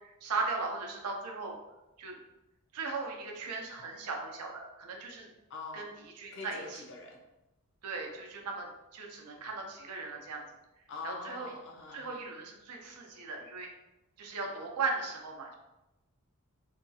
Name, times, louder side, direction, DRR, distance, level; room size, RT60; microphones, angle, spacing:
voice 1, 0.2-1.6 2.0-2.2 2.7-5.3 5.7-5.9 6.2-6.8 7.8-10.4 11.0-11.5 11.9-13.7 14.2-15.6, right 4 dB, 90° right, 1 dB, 0.5 m, -37 dB
voice 2, 5.5-5.9 6.3-7.2 10.9-12.2, left 3 dB, 55° left, 0 dB, 0.6 m, -44 dB
2.7 x 2.3 x 2.6 m, 0.97 s
head